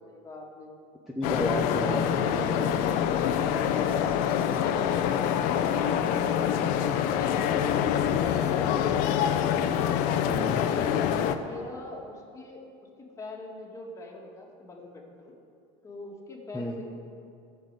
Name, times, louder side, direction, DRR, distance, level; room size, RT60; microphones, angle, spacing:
voice 1, 0.1-0.7 1.7-2.0 10.6-11.1 11.4-12.6 13.2-15.4 15.8-16.8, left 2 dB, 20° left, 0 dB, 2.1 m, -43 dB
voice 2, 1.1-2.7 8.1-8.3 10.2-10.6 16.5-16.8, equal, ahead, -2 dB, 1.0 m, -33 dB
sound 1, 1.2-11.4, left 9 dB, 65° left, 0.8 m, -25 dB
14.0 x 7.0 x 8.2 m, 2.5 s
cardioid pair, 140°, 15 cm